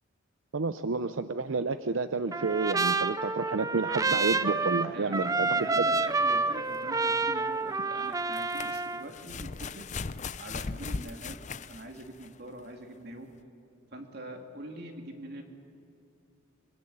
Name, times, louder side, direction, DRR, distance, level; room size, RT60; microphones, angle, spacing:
voice 1, 0.5-5.5 5.8-5.9, right 4 dB, 80° right, 10 dB, 0.7 m, -30 dB
Trumpet, 2.3-9.0, right 3 dB, 15° right, 0.5 m, -29 dB
voice 2, 4.9-9.9 10.4-13.3 13.9-15.4, right 1 dB, 55° right, 3 dB, 2.8 m, -43 dB
sound 1, 6.1-6.2 8.1-12.4 13.4-13.5, left 4 dB, 35° left, 0.5 m, -38 dB
25.5 x 23.0 x 8.8 m, 2.6 s
head